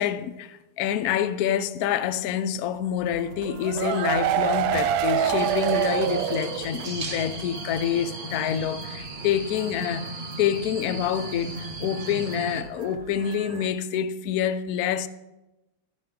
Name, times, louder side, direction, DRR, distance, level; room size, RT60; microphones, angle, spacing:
voice 1, 0.0-15.1, left 9 dB, 75° left, 0.8 m, -27 dB
sound 1, 3.0-13.7, right 5 dB, 55° right, 1.2 m, -46 dB
sound 2, 3.4-7.0 7.3-7.4 7.8-7.9, right 10 dB, 75° right, 1.3 m, -25 dB
sound 3, 5.4-12.6, right 3 dB, 35° right, 0.9 m, -36 dB
13.5 x 10.5 x 3.6 m
omnidirectional pair, 2.3 m